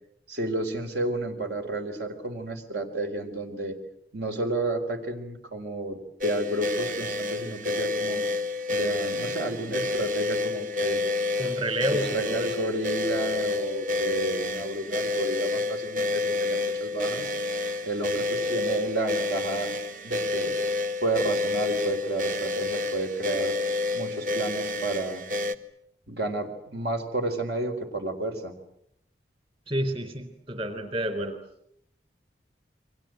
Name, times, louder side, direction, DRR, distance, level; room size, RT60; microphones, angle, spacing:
voice 1, 0.3-3.8 4.1-8.2 8.7-11.0 11.9-17.3 17.8-19.7 20.0-20.5 21.0-23.6 23.9-25.2 26.1-28.5, right 2 dB, 75° right, 6 dB, 4.2 m, -31 dB
sound 1, 6.2-25.6, left 2 dB, 45° right, 1.7 m, -29 dB
voice 2, 11.4-12.5 29.7-31.4, right 1 dB, 30° right, 9 dB, 3.7 m, -29 dB
29.5 x 24.5 x 7.8 m, 0.75 s
head